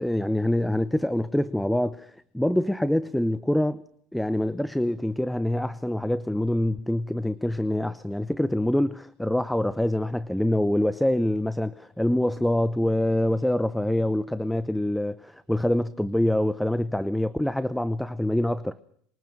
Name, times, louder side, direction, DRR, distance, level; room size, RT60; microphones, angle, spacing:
voice 1, 0.0-3.8 4.1-18.7, left 1 dB, 5° left, 0.9 m, -25 dB
24.0 x 20.5 x 6.4 m
supercardioid pair, 100°, 0 cm